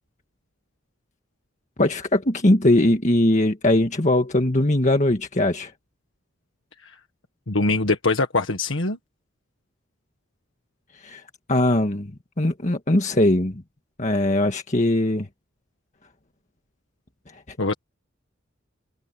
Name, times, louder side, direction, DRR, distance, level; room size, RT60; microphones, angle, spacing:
voice 1, 1.8-5.7 11.0-11.2 11.5-12.1 12.4-13.6 14.0-15.3, left 1 dB, 40° left, 1.7 m, -20 dB
voice 2, 7.5-9.0 17.6-17.7, left 3 dB, 80° left, 1.6 m, -22 dB
head